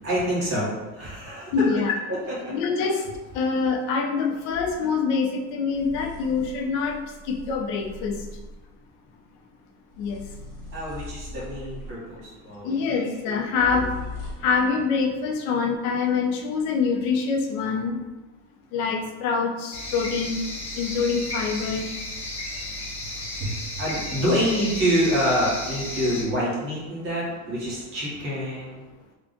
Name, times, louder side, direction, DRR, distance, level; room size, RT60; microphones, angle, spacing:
voice 1, 0.0-1.5 2.1-2.6 10.7-13.9 14.4-14.5 23.4-28.8, equal, 35° right, -8 dB, 1.4 m, -27 dB
voice 2, 1.5-1.9 2.5-3.0 3.3-7.0 7.3-8.2 10.0-10.2 12.6-13.9 14.4-18.0 18.7-20.4 20.8-21.9 24.3-24.4, left 5 dB, 55° left, 2 dB, 0.6 m, -25 dB
sound 1, 4.5-4.8 5.7-8.7 9.9-12.2 13.5-14.6, left 2 dB, 5° right, 1.5 m, -39 dB
sound 2, 19.7-26.2, left 1 dB, 15° left, 0.8 m, -33 dB
3.5 x 2.3 x 3.8 m, 1.1 s
cardioid pair, 160°, 38 cm